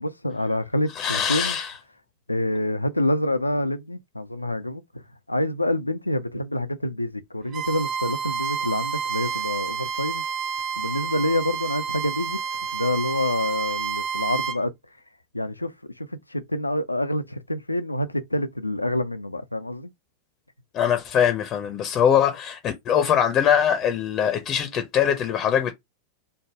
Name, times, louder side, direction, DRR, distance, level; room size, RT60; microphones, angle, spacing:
voice 1, 0.0-1.6 2.3-4.8 5.3-10.2 10.8-12.4 12.7-14.7 15.3-15.7 16.0-19.9, left 1 dB, 85° left, 0.3 m, -27 dB
voice 2, 1.0-1.7 20.7-25.7, left 8 dB, 30° left, 0.6 m, -22 dB
Bowed string instrument, 7.5-14.6, right 6 dB, 30° right, 0.4 m, -29 dB
3.3 x 2.1 x 3.4 m
figure-of-eight pair, 90°, 0 cm